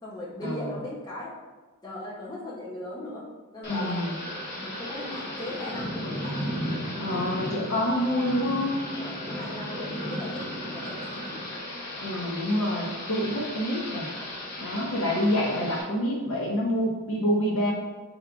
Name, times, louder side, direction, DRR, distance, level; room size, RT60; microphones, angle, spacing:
voice 1, 0.0-1.3 1.8-4.0 4.6-6.4 8.9-11.4, left 1 dB, 20° left, -6 dB, 0.8 m, -38 dB
Thunder / Rain, 3.6-15.8, equal, 50° left, 1.0 m, -35 dB
voice 2, 3.7-4.1 7.0-8.8 12.0-14.1 14.6-17.7, equal, 70° left, -2 dB, 0.8 m, -27 dB
5.4 x 3.5 x 2.4 m, 1.3 s
head